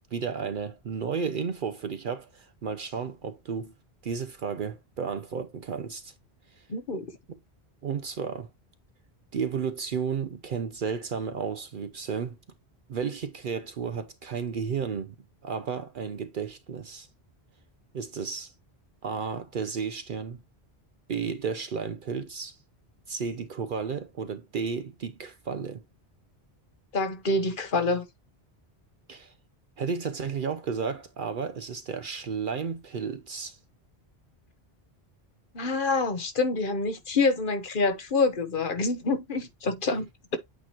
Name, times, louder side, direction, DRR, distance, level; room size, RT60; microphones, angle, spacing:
voice 1, 0.1-3.7 4.0-6.1 6.5-6.7 7.3-7.4 7.8-8.5 9.3-12.4 12.9-15.1 15.4-17.1 17.9-18.5 19.0-20.4 21.1-22.6 23.1-25.8 29.1-29.3 29.8-33.6, right 6 dB, 60° right, 0.7 m, -33 dB
voice 2, 6.7-7.1 26.9-28.1 35.5-40.4, left 3 dB, 55° left, 1.2 m, -27 dB
8.3 x 3.0 x 4.3 m
omnidirectional pair, 1.1 m